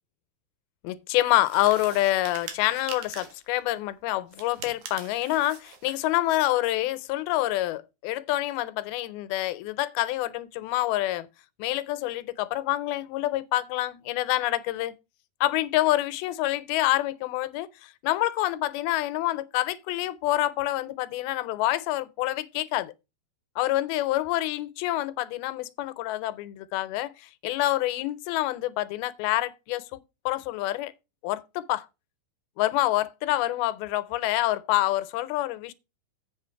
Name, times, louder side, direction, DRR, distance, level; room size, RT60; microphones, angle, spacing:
voice 1, 0.8-11.3 11.6-14.9 15.4-22.9 23.6-30.0 30.3-30.9 31.2-31.9 32.6-35.7, left 16 dB, 85° left, 2.6 m, -27 dB
sound 1, 1.4-3.5 4.3-6.1, right 7 dB, 70° right, 3.4 m, -43 dB
8.3 x 5.6 x 5.6 m
omnidirectional pair, 4.3 m